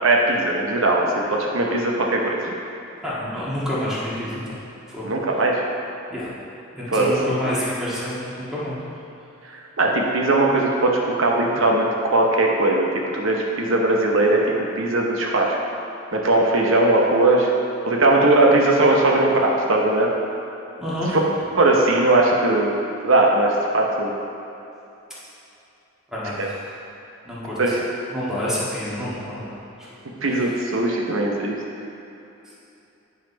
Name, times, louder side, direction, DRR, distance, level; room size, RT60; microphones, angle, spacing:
voice 1, 0.0-2.5 5.0-5.6 6.9-7.1 9.4-15.5 16.1-17.5 17.9-20.1 21.6-22.7 23.0-24.1 26.4-26.5 27.6-27.8 30.2-31.6, right 2 dB, 70° right, -1 dB, 0.8 m, -19 dB
voice 2, 3.0-4.6 4.9-5.1 6.1-6.3 6.7-8.8 20.8-21.2 26.1-26.6 27.2-27.7 28.1-29.9 30.3-30.6 32.4-32.5, equal, 5° right, -9 dB, 1.7 m, -28 dB
9.1 x 4.3 x 5.1 m, 2.8 s
head